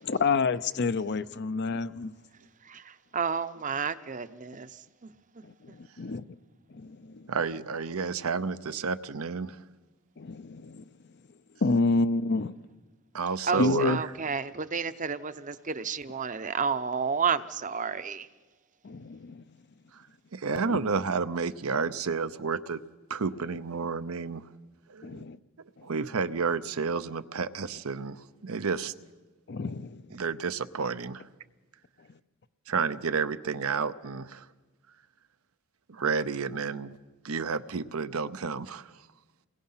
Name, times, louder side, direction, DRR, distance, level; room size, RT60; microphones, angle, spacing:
voice 1, 0.0-2.1 5.4-6.2 6.7-7.2 10.2-10.8 11.6-12.6 13.6-14.0 18.8-19.4 20.7-20.8 25.0-25.4 29.5-30.0, left 3 dB, 50° left, 0.6 m, -28 dB
voice 2, 2.7-4.7 5.0-5.1 13.5-18.3, right 6 dB, 35° right, 0.8 m, -31 dB
voice 3, 7.3-9.6 13.1-14.1 20.3-22.8 23.1-24.4 24.9-25.2 25.8-28.9 30.1-31.2 32.7-34.4 35.9-37.0 37.2-38.9, right 5 dB, 80° right, 0.8 m, -31 dB
29.0 x 21.0 x 5.7 m
head